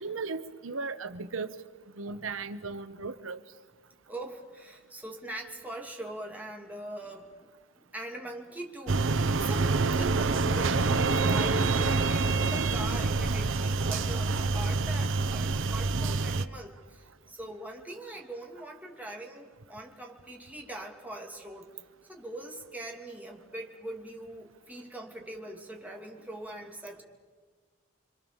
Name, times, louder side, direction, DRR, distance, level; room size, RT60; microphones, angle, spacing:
voice 1, 0.0-1.5 2.0-3.4, right 4 dB, 85° right, 12 dB, 1.0 m, -36 dB
voice 2, 4.1-7.5 7.7-9.0 9.4-21.7 22.1-27.0, right 1 dB, 10° right, 0 dB, 2.8 m, -42 dB
sound 1, 8.9-16.4, right 3 dB, 70° right, 0.8 m, -27 dB
sound 2, 10.3-14.7, equal, 30° right, 6.1 m, -41 dB
27.0 x 25.0 x 7.2 m, 1.5 s
head